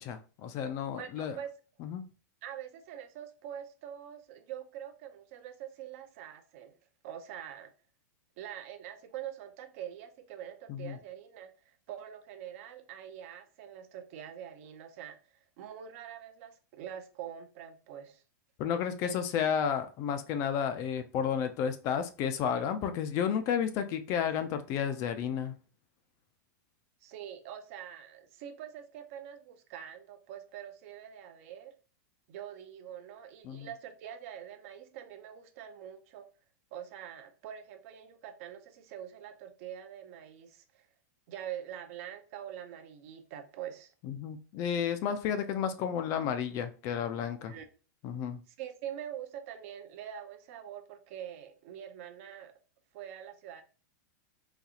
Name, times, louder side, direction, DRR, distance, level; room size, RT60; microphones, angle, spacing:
voice 1, 0.0-1.4 1.8-2.0 10.7-11.0 18.6-25.5 33.4-33.7 44.1-47.5 48.0-48.4, left 8 dB, 30° left, 0.4 m, -32 dB
voice 2, 1.0-1.5 2.4-6.8 7.0-7.7 8.4-18.2 19.0-19.1 27.0-31.8 32.3-36.3 36.7-40.9 41.3-43.9 47.5-47.7 48.5-52.5 52.9-53.6, right 10 dB, 50° right, 0.6 m, -44 dB
3.9 x 2.4 x 2.8 m
supercardioid pair, 150°, 10 cm